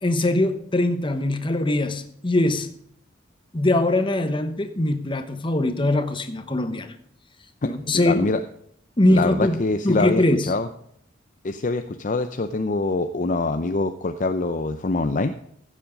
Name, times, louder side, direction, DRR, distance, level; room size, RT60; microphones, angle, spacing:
voice 1, 0.0-2.7 3.5-6.9 7.7-8.2 9.0-9.6 9.8-10.5, left 1 dB, 25° left, 1.1 m, -22 dB
voice 2, 7.6-8.4 9.1-10.7 11.4-15.3, left 3 dB, 40° left, 0.6 m, -24 dB
15.5 x 7.5 x 5.1 m
head